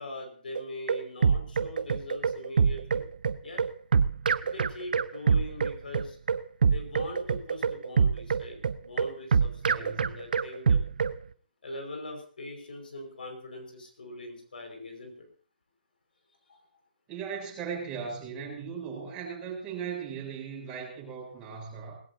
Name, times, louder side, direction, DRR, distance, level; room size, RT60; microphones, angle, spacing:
voice 1, 0.0-3.0 3.4-3.6 4.4-6.2 6.6-10.8 11.6-15.3 16.5-16.6, left 2 dB, 75° left, 4 dB, 5.5 m, -42 dB
sound 1, 0.5-11.2, right 6 dB, 65° right, 0.8 m, -25 dB
voice 2, 9.6-10.1 17.1-22.0, right 6 dB, 20° right, -2 dB, 7.6 m, -38 dB
19.5 x 16.5 x 2.8 m, 0.44 s
figure-of-eight pair, 135°, 5 cm